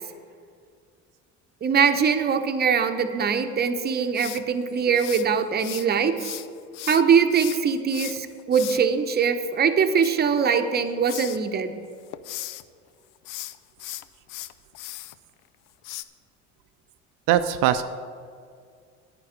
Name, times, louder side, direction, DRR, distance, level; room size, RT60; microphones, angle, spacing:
voice 1, 1.6-6.2 6.9-11.7, right 6 dB, 30° right, 8 dB, 0.8 m, -22 dB
sound 1, 4.1-5.9 6.2-8.8 9.8-10.8 11.1-11.4 11.8-12.6 13.2-15.1 15.8-16.0, left 15 dB, 70° left, 0.6 m, -37 dB
voice 2, 17.3-17.8, right 11 dB, 75° right, 9 dB, 0.5 m, -20 dB
9.3 x 9.1 x 5.0 m, 2.2 s
supercardioid pair, 95°, 33 cm